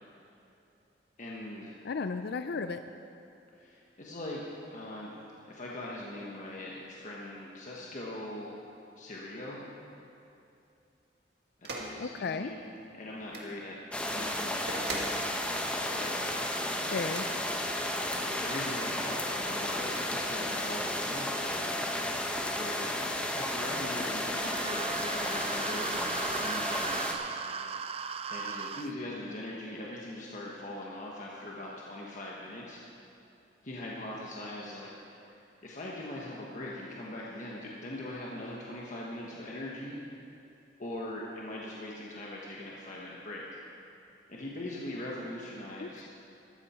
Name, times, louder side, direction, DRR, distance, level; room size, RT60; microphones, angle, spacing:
voice 1, 1.2-1.8 3.5-8.6 9.0-9.7 11.6-12.7 12.9-13.8 14.1-16.3 18.0-21.7 22.5-23.1 23.3-27.7 28.2-32.8 33.6-40.0 40.8-43.5 44.3-46.1, left 1 dB, 45° left, -4 dB, 1.3 m, -41 dB
voice 2, 1.8-2.8 12.0-12.5 16.9-17.3 45.8-46.1, left 4 dB, 60° left, 9 dB, 0.4 m, -34 dB
sound 1, 11.6-11.9 13.2-13.5 14.7-15.2 17.0-17.3, right 3 dB, 65° right, 1.8 m, -38 dB
sound 2, 13.9-27.1, left 1 dB, 5° left, 0.9 m, -33 dB
sound 3, 24.3-28.9, right 6 dB, 35° right, 0.4 m, -37 dB
14.0 x 13.5 x 4.3 m, 2.7 s
head